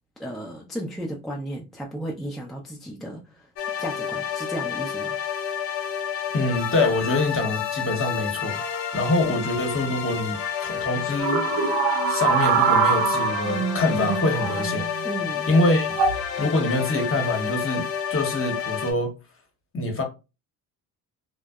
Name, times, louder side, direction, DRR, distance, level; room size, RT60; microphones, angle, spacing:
voice 1, 0.2-3.5 3.8-5.2 15.0-15.5, right 1 dB, ahead, 0.5 m, -34 dB
sound 1, 3.6-18.9, left 8 dB, 70° left, 0.7 m, -30 dB
voice 2, 6.3-8.6 8.9-11.6 12.1-14.9 15.5-16.0 16.4-17.8 18.1-19.1 19.7-20.0, left 2 dB, 30° left, 0.9 m, -25 dB
sound 2, 11.2-15.0 15.9-16.3 17.2-17.5, right 6 dB, 55° right, 0.5 m, -24 dB
2.5 x 2.1 x 2.3 m
hypercardioid pair, 65°, 45 cm